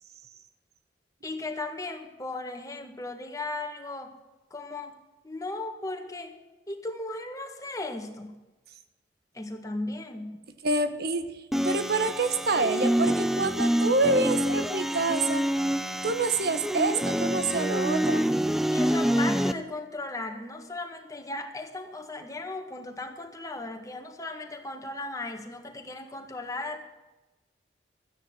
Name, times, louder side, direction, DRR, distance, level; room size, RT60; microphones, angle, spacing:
voice 1, 1.2-4.1 4.5-4.9 5.2-6.4 6.7-8.4 9.3-10.5 18.7-26.8, left 2 dB, 20° left, 4 dB, 1.8 m, -36 dB
voice 2, 10.6-11.4 11.6-15.5 16.0-18.3, right 3 dB, 60° right, 10 dB, 1.1 m, -27 dB
sound 1, 11.5-19.5, equal, ahead, 0.5 m, -27 dB
13.0 x 9.8 x 7.5 m, 1.1 s
head